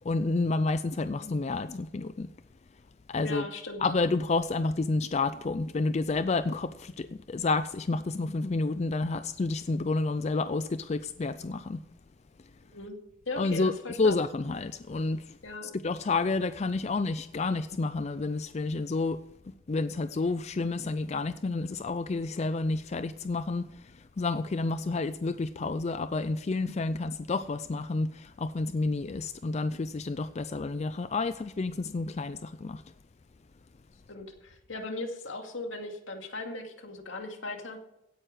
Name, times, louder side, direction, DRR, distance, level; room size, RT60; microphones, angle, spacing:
voice 1, 0.0-2.3 3.1-3.5 3.8-11.8 13.4-13.7 14.0-32.8, left 3 dB, 35° left, 0.4 m, -30 dB
voice 2, 3.2-3.8 12.6-13.0 13.3-14.2 15.4-15.7 34.1-37.8, left 2 dB, 70° left, 2.3 m, -38 dB
16.5 x 9.1 x 4.9 m
head